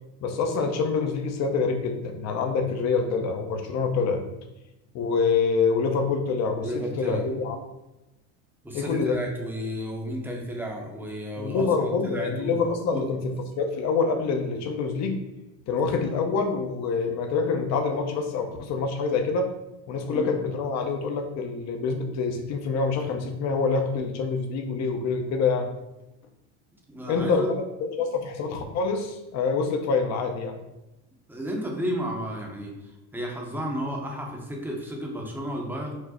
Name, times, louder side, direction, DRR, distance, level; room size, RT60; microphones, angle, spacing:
voice 1, 0.2-4.2 4.9-7.6 8.7-9.2 11.4-15.2 15.7-19.5 19.9-25.7 27.1-30.6, left 4 dB, 45° left, 5 dB, 0.7 m, -26 dB
voice 2, 6.6-7.3 8.6-12.6 12.9-13.0 20.1-20.3 26.9-27.5 31.3-35.9, equal, 5° right, 0 dB, 0.7 m, -32 dB
4.6 x 2.0 x 4.2 m, 0.97 s
supercardioid pair, 120°, 38 cm